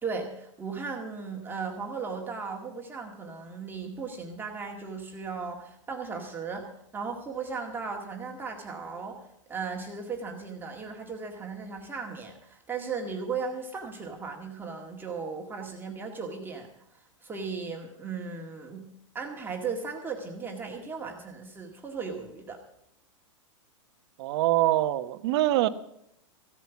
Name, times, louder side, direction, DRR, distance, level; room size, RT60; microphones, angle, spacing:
voice 1, 0.0-18.9 19.1-22.6, right 5 dB, 10° right, 1 dB, 1.9 m, -36 dB
voice 2, 24.2-25.7, right 15 dB, 55° right, 11 dB, 1.1 m, -24 dB
15.5 x 9.4 x 7.1 m, 0.77 s
hypercardioid pair, 140°, 16 cm